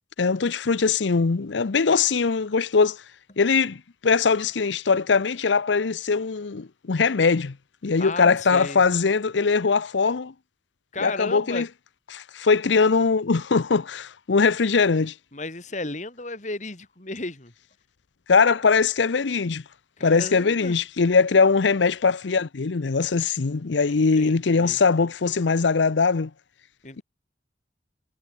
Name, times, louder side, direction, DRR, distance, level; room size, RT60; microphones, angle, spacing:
voice 1, 0.2-3.0 3.4-7.5 7.8-10.3 11.0-11.7 12.1-15.1 18.3-19.6 20.0-26.3, left 4 dB, 85° left, 0.7 m, -21 dB
voice 2, 8.0-8.8 10.9-11.7 15.3-17.5 20.0-20.8 23.9-24.8 26.8-27.0, left 2 dB, 40° left, 2.6 m, -34 dB
head